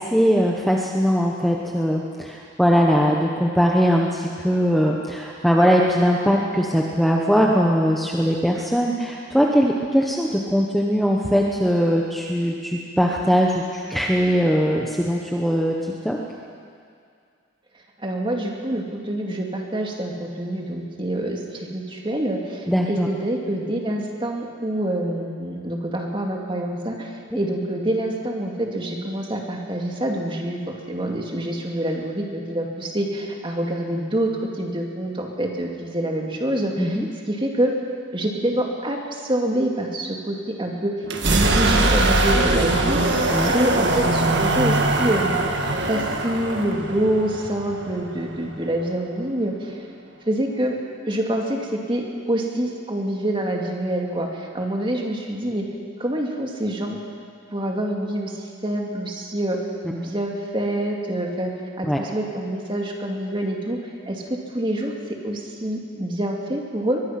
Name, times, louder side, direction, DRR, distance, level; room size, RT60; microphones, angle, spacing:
voice 1, 0.0-15.7 16.0-16.2 22.7-23.1 36.8-37.1 43.3-43.5 61.8-62.0, equal, ahead, -2 dB, 1.1 m, -20 dB
voice 2, 18.0-37.0 37.3-37.7 38.1-40.9 41.2-45.4 45.9-49.8 50.2-50.7 51.1-55.7 56.0-57.0 57.5-59.6 59.9-61.5 61.8-63.8 64.0-64.9 65.2-67.0, right 1 dB, 25° right, 0 dB, 2.4 m, -26 dB
sound 1, 41.0-48.8, right 2 dB, 55° right, 1.9 m, -21 dB
23.0 x 21.5 x 6.0 m, 2.3 s
head